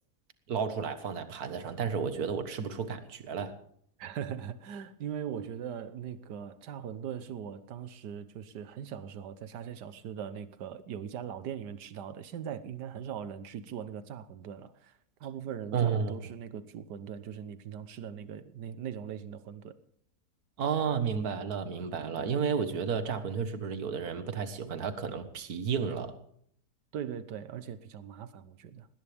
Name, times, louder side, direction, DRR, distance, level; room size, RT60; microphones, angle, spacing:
voice 1, 0.5-3.5 15.7-16.1 20.6-26.1, right 6 dB, 65° right, 1.9 m, -32 dB
voice 2, 4.0-19.8 26.9-28.9, right 8 dB, 85° right, 1.6 m, -40 dB
20.0 x 18.5 x 3.5 m
omnidirectional pair, 1.8 m